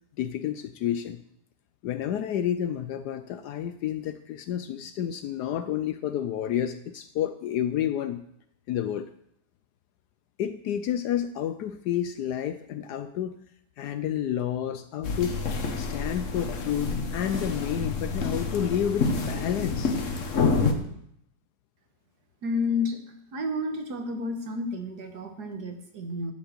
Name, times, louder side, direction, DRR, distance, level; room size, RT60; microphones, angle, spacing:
voice 1, 0.2-1.2 1.8-8.2 8.7-9.1 10.4-13.4 13.8-15.4 15.8-20.0, left 10 dB, 70° left, 10 dB, 1.0 m, -30 dB
sound 1, 15.0-20.7, left 4 dB, 50° left, 1.3 m, -28 dB
voice 2, 22.4-23.0 23.3-26.3, left 3 dB, 60° right, 4 dB, 1.8 m, -30 dB
12.0 x 5.4 x 6.6 m, 0.74 s
omnidirectional pair, 2.0 m